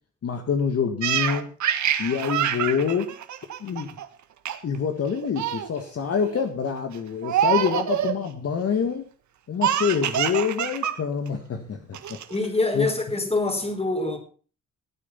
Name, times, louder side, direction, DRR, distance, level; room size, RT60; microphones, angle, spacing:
voice 1, 0.2-1.5 2.0-3.1 3.6-4.0 4.6-9.1 9.5-11.8 12.1-12.2 12.7-12.9, left 6 dB, 50° left, 1.8 m, -26 dB
Laughter, 1.0-4.1 4.5-4.8 5.1-5.7 6.2-6.5 7.2-8.2 9.6-11.0 11.3-11.4 11.9-12.5, right 10 dB, 70° right, 1.7 m, -26 dB
voice 2, 12.3-14.2, left 2 dB, 20° left, 4.2 m, -25 dB
16.0 x 9.0 x 5.7 m
cardioid pair, 90°, 30 cm